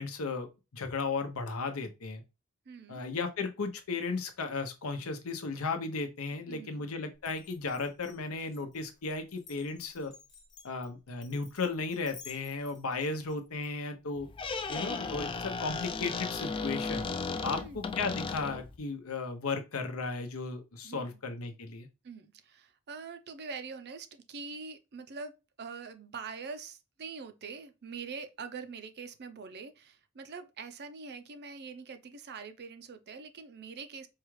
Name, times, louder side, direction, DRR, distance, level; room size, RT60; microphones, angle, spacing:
voice 1, 0.0-2.2 2.9-10.1 10.6-14.3 14.7-17.1 17.4-21.9, left 4 dB, 75° left, 0.8 m, -35 dB
voice 2, 2.7-3.0 6.3-6.8 17.5-17.8 20.8-21.2 22.0-25.3 25.6-34.1, right 5 dB, 50° right, 0.5 m, -44 dB
Glass, 7.2-13.7, left 6 dB, 55° left, 1.1 m, -54 dB
Squeak, 14.2-18.8, left 4 dB, 25° left, 0.3 m, -35 dB
4.6 x 2.3 x 3.1 m
head